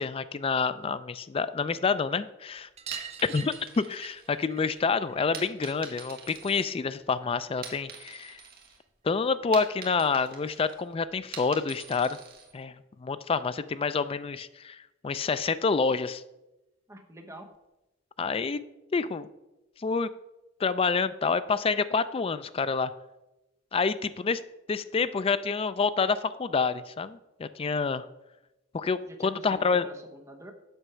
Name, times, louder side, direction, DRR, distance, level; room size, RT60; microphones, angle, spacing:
voice 1, 0.0-2.7 3.3-8.4 9.0-12.2 12.5-12.7 13.0-14.8 15.0-16.2 18.2-18.6 18.9-19.3 19.8-20.1 20.6-22.9 23.7-24.4 24.7-28.0 28.7-29.9, left 5 dB, 30° left, 14 dB, 0.4 m, -28 dB
sound 1, 2.8-7.9 8.2-9.3 10.7-10.8 11.0-11.1 11.4-11.5 12.8-12.9 13.2-13.3 13.6-13.7 14.9-15.0 15.8-15.9, right 7 dB, 35° right, 0.6 m, -46 dB
sound 2, 2.8-4.7 5.3-7.1 7.5-8.8 9.1-12.5, right 5 dB, 50° right, 1.7 m, -45 dB
voice 2, 16.9-17.5 29.0-30.5, right 1 dB, 15° right, 4 dB, 1.0 m, -46 dB
7.9 x 6.2 x 5.6 m, 0.97 s
head